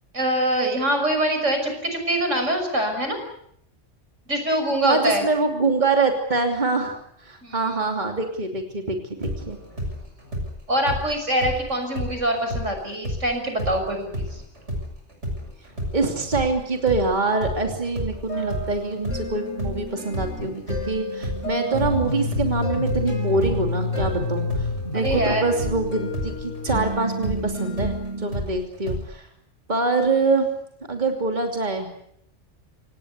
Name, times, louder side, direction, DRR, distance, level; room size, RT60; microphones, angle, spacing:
voice 1, 0.1-3.2 4.3-5.3 7.4-7.9 10.7-14.4 20.4-20.5 24.9-25.6, right 1 dB, 85° right, 5 dB, 6.4 m, -24 dB
voice 2, 4.8-7.0 7.2-9.6 15.9-29.3 29.7-30.5 30.9-31.9, right 3 dB, 40° right, 3 dB, 3.1 m, -25 dB
sound 1, 9.2-12.7 13.0-20.9 21.2-29.0, equal, 70° right, 6.9 m, -31 dB
sound 2, 18.2-28.4, equal, 90° left, 5.9 m, -34 dB
sound 3, 21.7-27.7, left 3 dB, 55° left, 4.8 m, -29 dB
27.0 x 19.0 x 8.2 m, 0.69 s
omnidirectional pair, 1.2 m